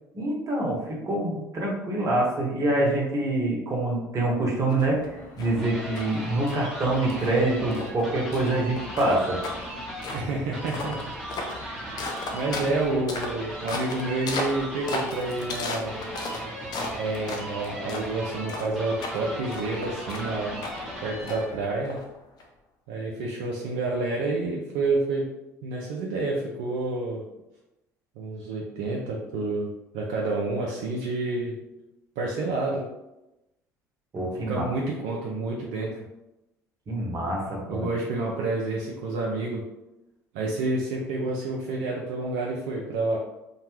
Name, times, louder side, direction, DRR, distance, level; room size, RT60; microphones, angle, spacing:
voice 1, 0.1-9.4 11.6-11.8 34.1-34.7 36.9-37.9, right 2 dB, 40° right, -2 dB, 1.0 m, -26 dB
sound 1, 4.7-22.4, left 2 dB, 50° left, 0.5 m, -37 dB
sound 2, 5.2-21.7, equal, 5° right, 1.0 m, -38 dB
voice 2, 10.1-11.0 12.3-16.0 17.0-20.6 21.0-22.0 22.9-25.3 25.6-27.2 28.2-31.6 32.2-32.8 34.5-36.0 37.7-39.6 40.3-43.2, right 2 dB, 70° right, -2 dB, 0.4 m, -29 dB
2.7 x 2.2 x 3.0 m, 0.95 s
hypercardioid pair, 65°, 9 cm